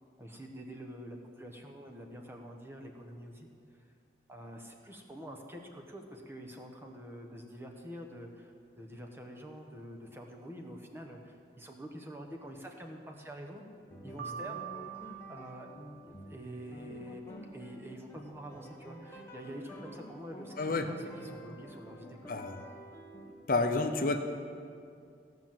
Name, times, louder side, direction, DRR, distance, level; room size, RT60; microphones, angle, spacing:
voice 1, 0.2-3.5 3.7-3.8 4.3-13.6 14.0-14.6 15.3-15.7 16.0-22.3, equal, 15° right, 1 dB, 1.1 m, -47 dB
sound 1, 13.9-23.3, equal, 15° left, 1.1 m, -49 dB
Piano, 14.2-16.3, right 9 dB, 70° right, 1.4 m, -44 dB
voice 2, 22.3-22.6 23.5-24.2, left 3 dB, 50° left, 5 dB, 0.7 m, -29 dB
15.5 x 5.9 x 7.7 m, 2.3 s
head